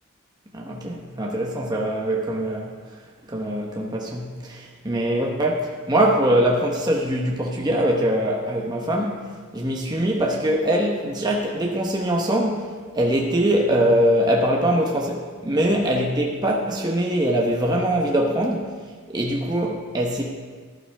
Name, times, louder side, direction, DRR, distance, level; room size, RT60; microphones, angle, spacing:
voice 1, 0.5-2.7 3.3-18.7 19.1-20.2, right 1 dB, 20° right, -1 dB, 1.0 m, -22 dB
13.5 x 11.5 x 3.4 m, 1.5 s
head